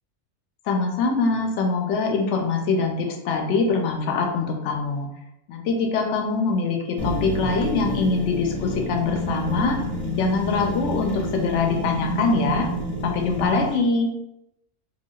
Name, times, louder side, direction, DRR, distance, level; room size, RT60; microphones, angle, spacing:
voice 1, 0.7-5.1 5.5-9.8 10.2-12.7 13.0-14.1, left 4 dB, 65° left, 2 dB, 0.7 m, -23 dB
sound 1, 7.0-13.7, equal, 20° left, 0.5 m, -28 dB
3.9 x 2.2 x 2.3 m, 0.85 s
omnidirectional pair, 1.6 m